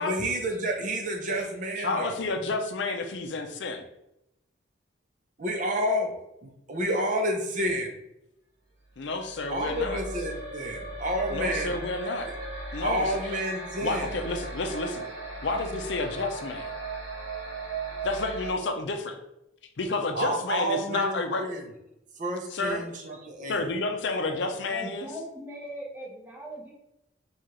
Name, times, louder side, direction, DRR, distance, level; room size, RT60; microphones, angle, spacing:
voice 1, 0.0-2.2 5.4-6.2 6.4-7.9 9.5-11.8 12.8-14.1 20.1-21.6 22.2-23.6, equal, 40° right, 2 dB, 0.6 m, -30 dB
voice 2, 1.8-3.8 9.0-10.0 11.3-12.3 12.7-13.2 13.8-15.1 15.4-16.7 18.0-19.2 19.8-21.4 22.5-22.8 23.5-25.1, left 3 dB, 65° left, 5 dB, 0.5 m, -30 dB
sound 1, 9.0-18.5, right 3 dB, 90° right, 1.0 m, -37 dB
voice 3, 24.7-26.7, equal, 10° right, -3 dB, 0.8 m, -39 dB
4.7 x 2.4 x 3.0 m, 0.86 s
head